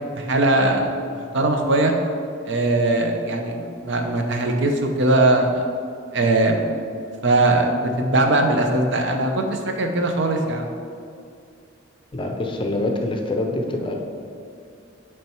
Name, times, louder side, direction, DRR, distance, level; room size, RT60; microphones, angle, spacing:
voice 1, 0.1-0.9 1.3-1.9 2.5-5.6 6.1-6.6 7.2-10.7, right 2 dB, 60° right, 4 dB, 0.7 m, -20 dB
voice 2, 12.1-13.9, left 2 dB, 25° left, 2 dB, 0.6 m, -25 dB
8.6 x 3.3 x 4.4 m, 2.4 s
head